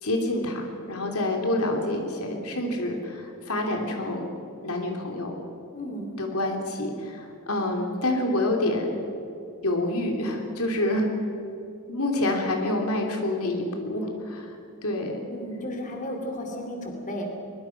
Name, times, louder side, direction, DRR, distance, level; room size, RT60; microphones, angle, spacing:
voice 1, 0.0-4.3 4.6-5.3 6.2-8.9 9.6-11.1 11.9-14.5 14.8-15.3, left 1 dB, 75° left, 2 dB, 3.2 m, -27 dB
voice 2, 5.7-6.1 15.3-17.3, equal, 35° left, 2 dB, 3.0 m, -34 dB
23.0 x 22.5 x 6.0 m, 2.7 s
head